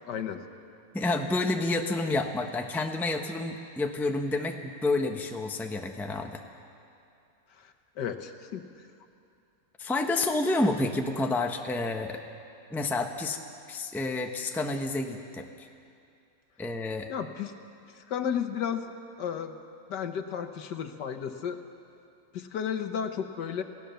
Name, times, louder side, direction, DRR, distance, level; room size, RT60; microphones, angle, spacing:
voice 1, 0.1-0.4 7.6-8.6 17.1-17.5 18.0-18.9 19.2-19.6 19.9-21.6 22.3-23.6, left 8 dB, 75° left, 7 dB, 1.7 m, -33 dB
voice 2, 0.9-6.4 9.8-12.2 12.7-13.4 13.7-15.7 16.6-17.1, left 2 dB, ahead, 3 dB, 0.8 m, -29 dB
28.5 x 16.5 x 6.9 m, 2.5 s
omnidirectional pair, 1.9 m